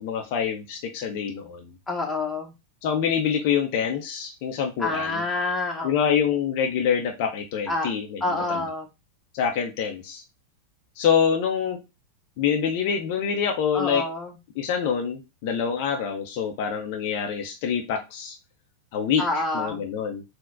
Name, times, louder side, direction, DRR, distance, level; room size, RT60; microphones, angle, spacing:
voice 1, 0.0-1.7 2.8-5.2 5.8-8.2 8.5-8.6 9.3-10.2 11.0-11.8 12.4-14.0 14.6-18.4 18.9-20.2, left 7 dB, 45° left, 3 dB, 0.5 m, -26 dB
voice 2, 1.9-2.5 4.8-6.3 7.7-7.9 8.2-8.9 13.7-14.3 19.2-19.8, left 2 dB, 10° left, 0 dB, 0.8 m, -28 dB
3.8 x 2.1 x 2.5 m, 0.25 s
figure-of-eight pair, 90°, 0 cm